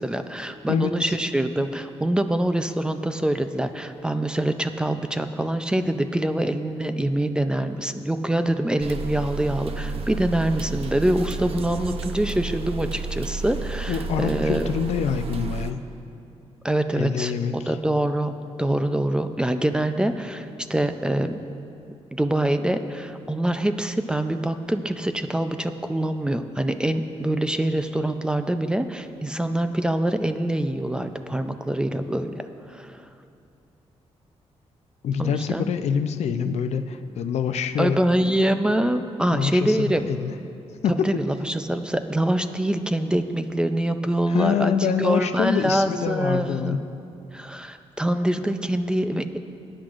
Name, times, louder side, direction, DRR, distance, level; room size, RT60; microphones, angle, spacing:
voice 1, 0.0-14.7 16.6-18.3 18.6-21.4 22.1-32.3 32.7-33.0 35.2-35.7 37.8-40.1 41.0-44.7 45.0-46.8 47.3-49.4, right 1 dB, 10° right, 8 dB, 0.4 m, -25 dB
voice 2, 0.7-1.2 13.9-15.8 16.9-17.8 35.0-38.0 39.3-39.8 40.0-40.3 40.8-41.2 44.3-46.8, left 7 dB, 75° left, 9 dB, 0.5 m, -25 dB
sound 1, 8.8-15.7, right 4 dB, 60° right, 0.6 m, -32 dB
21.0 x 10.0 x 2.5 m, 2.5 s
wide cardioid pair, 145°, 11 cm